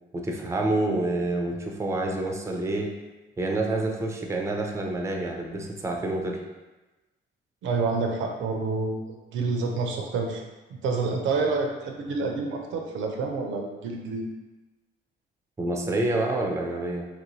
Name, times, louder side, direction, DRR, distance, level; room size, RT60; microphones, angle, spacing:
voice 1, 0.1-2.9 3.4-6.4 15.6-17.1, right 2 dB, 15° right, 1 dB, 0.5 m, -28 dB
voice 2, 7.6-10.4 10.8-14.2, right 4 dB, 75° right, 2 dB, 0.5 m, -28 dB
3.0 x 2.6 x 3.0 m, 1.1 s
cardioid pair, 90°, 20 cm